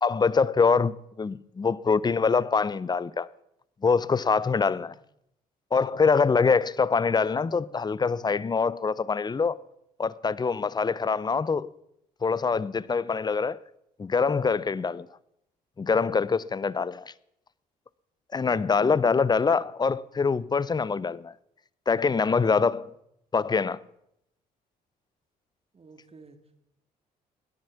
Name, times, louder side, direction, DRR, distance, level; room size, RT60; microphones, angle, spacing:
voice 1, 0.0-3.3 3.8-4.9 5.7-9.6 10.0-11.7 12.2-13.6 14.0-15.1 15.8-17.1 18.3-21.3 21.9-22.9 23.3-23.8, left 5 dB, 20° left, 0.6 m, -24 dB
voice 2, 18.4-19.1 22.5-22.6 25.7-26.6, right 4 dB, 30° right, 2.1 m, -50 dB
17.0 x 10.5 x 5.9 m
hypercardioid pair, 50°, 20 cm